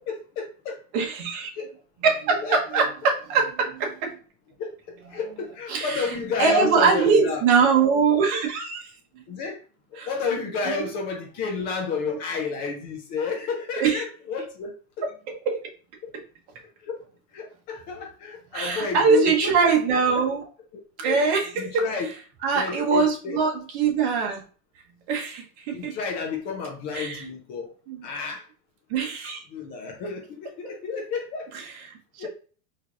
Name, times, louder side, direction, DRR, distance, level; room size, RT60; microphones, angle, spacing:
voice 1, 0.1-0.8 1.6-1.7 2.4-2.8 4.6-4.7 5.1-7.4 9.3-9.6 9.9-15.1 16.0-16.1 16.8-17.0 17.3-19.5 20.1-20.2 21.0-21.2 21.5-22.1 22.6-23.4 25.7-27.7 28.0-28.4 29.5-31.5 32.2-32.3, left 5 dB, 25° left, 1 dB, 0.4 m, -31 dB
voice 2, 0.9-1.5 2.0-4.2 5.7-8.8 10.0-10.1 10.6-10.9 13.8-14.0 15.0-15.6 16.1-16.2 18.5-20.4 21.0-22.1 22.4-24.4 25.1-26.0 26.9-27.2 27.9-28.1 28.9-29.4 31.5-32.3, right 5 dB, 50° right, 1 dB, 1.0 m, -23 dB
4.4 x 2.8 x 2.4 m, 0.39 s
supercardioid pair, 155°, 42 cm